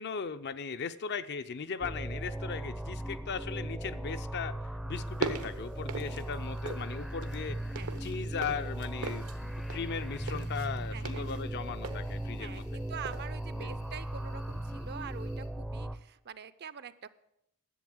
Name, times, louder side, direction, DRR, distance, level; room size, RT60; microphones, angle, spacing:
voice 1, 0.0-4.6 4.8-7.6 8.0-12.7 13.6-13.7, left 6 dB, 50° left, 11 dB, 0.5 m, -38 dB
sound 1, 1.8-16.0, right 1 dB, ahead, 0.5 m, -38 dB
voice 2, 2.5-3.0 6.0-6.4 7.7-8.0 10.9-11.4 12.4-17.1, right 7 dB, 50° right, 15 dB, 0.5 m, -46 dB
sound 2, 5.0-6.9 7.2-12.8 13.0-13.3, right 4 dB, 80° right, 1.0 m, -40 dB
sound 3, 6.2-15.5, left 2 dB, 80° left, 2.2 m, -58 dB
11.0 x 7.8 x 7.7 m, 0.77 s
head